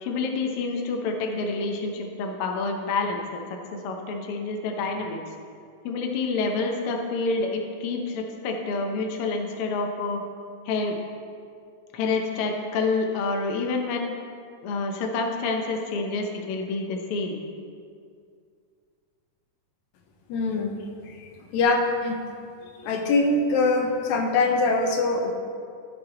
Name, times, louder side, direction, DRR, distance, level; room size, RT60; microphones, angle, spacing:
voice 1, 0.0-3.4 3.7-5.2 5.8-10.2 10.6-11.0 11.9-14.1 14.6-17.4, left 3 dB, 65° left, 2 dB, 1.6 m, -28 dB
voice 2, 20.3-20.7 21.0-22.2 22.8-25.3, left 3 dB, 80° left, 3 dB, 2.2 m, -23 dB
14.5 x 6.1 x 3.8 m, 2.3 s
omnidirectional pair, 3.3 m